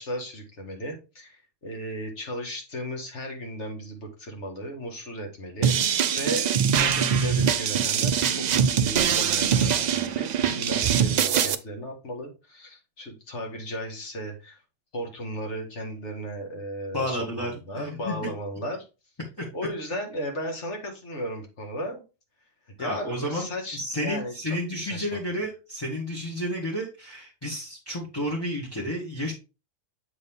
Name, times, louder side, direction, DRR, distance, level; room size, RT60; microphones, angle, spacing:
voice 1, 0.0-8.4 8.7-14.6 14.9-18.8 19.5-22.0 22.8-25.2, equal, 65° left, 2 dB, 2.0 m, -35 dB
sound 1, 5.6-11.5, right 8 dB, 70° right, 0.4 m, -23 dB
voice 2, 16.9-18.2 19.4-19.5 22.8-23.5 23.7-29.3, equal, 20° left, -3 dB, 1.5 m, -31 dB
7.4 x 4.0 x 3.5 m, 0.30 s
omnidirectional pair, 1.3 m